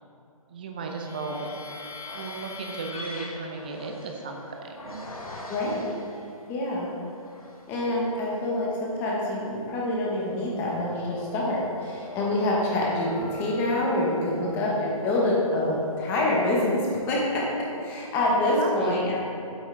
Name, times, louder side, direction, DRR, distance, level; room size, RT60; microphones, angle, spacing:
voice 1, 0.5-1.5 2.1-5.0 14.4-14.8 18.6-19.0, right 3 dB, 15° right, 2 dB, 0.5 m, -35 dB
sound 1, 0.9-6.4 6.9-7.8 8.2-17.4, equal, 80° left, 1.5 m, -43 dB
voice 2, 5.5-5.9 6.5-6.9 7.7-19.3, left 1 dB, 10° left, -4 dB, 1.0 m, -26 dB
8.0 x 8.0 x 3.8 m, 2.6 s
hypercardioid pair, 160°, 18 cm